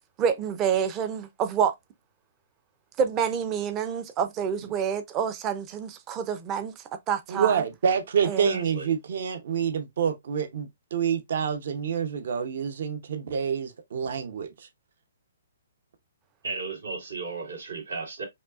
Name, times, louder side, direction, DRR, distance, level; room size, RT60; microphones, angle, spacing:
voice 1, 0.2-1.7 3.0-6.7 7.1-7.6 8.2-8.6, right 7 dB, 20° right, 0.5 m, -27 dB
voice 2, 7.3-14.5, right 7 dB, 60° right, 0.8 m, -27 dB
voice 3, 8.4-8.9 16.4-18.2, right 4 dB, 85° right, 2.5 m, -35 dB
5.2 x 2.4 x 2.4 m
hypercardioid pair, 155°, 0 cm